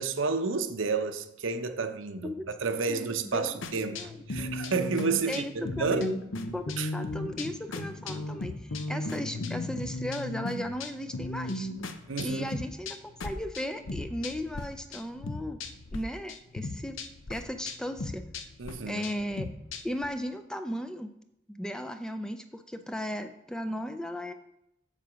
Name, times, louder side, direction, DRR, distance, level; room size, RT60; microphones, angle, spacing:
voice 1, 0.0-2.3 2.6-6.1 6.8-6.9 12.1-12.5 18.6-19.0, right 4 dB, 80° right, 0.8 m, -30 dB
voice 2, 2.9-4.5 5.3-5.5 5.8-6.2 6.5-11.7 12.2-15.6 15.9-17.0 17.3-18.3 18.9-19.5 19.8-21.1 21.5-24.3, equal, 5° left, 0.4 m, -36 dB
sound 1, 3.6-14.6 14.9-16.0 16.3-20.1, left 2 dB, 80° left, 0.7 m, -36 dB
7.4 x 7.1 x 5.0 m
head